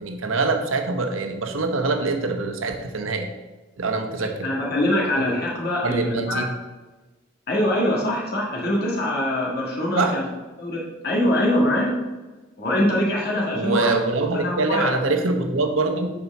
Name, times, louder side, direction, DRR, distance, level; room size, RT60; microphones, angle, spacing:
voice 1, 0.0-3.3 3.8-4.5 5.8-6.5 9.9-10.2 13.5-16.1, right 3 dB, 80° right, 5 dB, 1.0 m, -24 dB
voice 2, 4.2-6.5 7.5-10.3 10.6-11.9 12.6-14.0 14.3-14.9, left 1 dB, 50° left, -3 dB, 1.7 m, -23 dB
6.9 x 4.8 x 5.9 m, 1.2 s
head